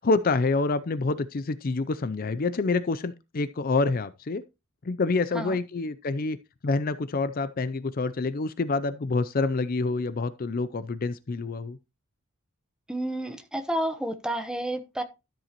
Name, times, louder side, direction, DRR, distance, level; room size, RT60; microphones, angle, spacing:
voice 1, 0.0-4.4 4.8-6.4 6.6-11.8, left 3 dB, 40° left, 0.5 m, -27 dB
voice 2, 12.9-15.0, right 1 dB, 5° right, 0.9 m, -30 dB
13.0 x 7.6 x 3.0 m
head